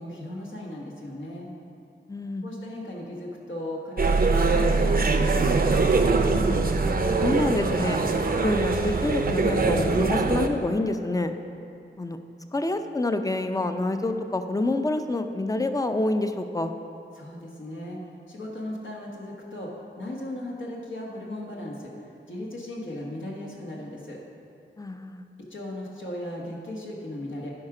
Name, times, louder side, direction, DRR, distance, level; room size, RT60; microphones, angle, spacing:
voice 1, 0.0-1.5 2.4-6.1 17.1-18.0 18.3-21.9 22.3-24.2 25.5-27.5, left 1 dB, 85° left, -3 dB, 1.4 m, -37 dB
voice 2, 2.1-2.5 6.8-8.0 8.4-11.3 12.0-12.2 12.5-16.7 24.8-25.2, left 2 dB, 20° left, 8 dB, 0.4 m, -27 dB
sound 1, 4.0-10.5, right 3 dB, 50° right, 0.6 m, -22 dB
11.0 x 4.9 x 4.9 m, 2.6 s
wide cardioid pair, 75°, 19 cm